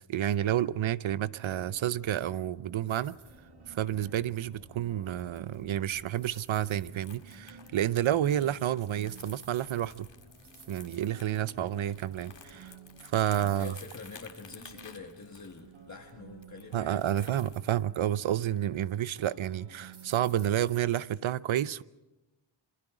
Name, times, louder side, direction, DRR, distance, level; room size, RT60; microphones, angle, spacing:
voice 1, 0.0-3.2 3.7-10.1 10.7-12.7 13.0-13.7 16.7-21.8, right 11 dB, 75° right, 0.7 m, -30 dB
sound 1, 0.6-13.7, right 1 dB, 10° right, 2.8 m, -58 dB
dark ewelina ewelina nowakowska, 2.9-20.8, right 6 dB, 60° right, 1.8 m, -54 dB
Crumpling crinkling, 3.0-17.6, left 6 dB, 65° left, 2.0 m, -55 dB
voice 2, 13.4-17.5, left 4 dB, 35° left, 1.5 m, -46 dB
27.0 x 24.0 x 4.9 m
wide cardioid pair, 155°, 47 cm